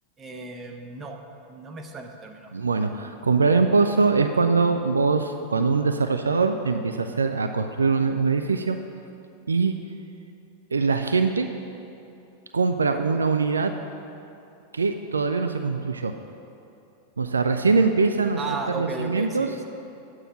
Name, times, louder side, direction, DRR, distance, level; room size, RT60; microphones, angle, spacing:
voice 1, 0.2-1.2 1.5-2.5 18.4-19.6, right 3 dB, 20° right, 3 dB, 0.9 m, -35 dB
voice 2, 2.5-8.8 9.5-9.7 10.7-11.5 12.5-13.7 14.7-16.1 17.2-19.5, right 4 dB, 75° right, 7 dB, 0.4 m, -22 dB
8.9 x 4.8 x 7.4 m, 2.7 s
figure-of-eight pair, 90°, 0 cm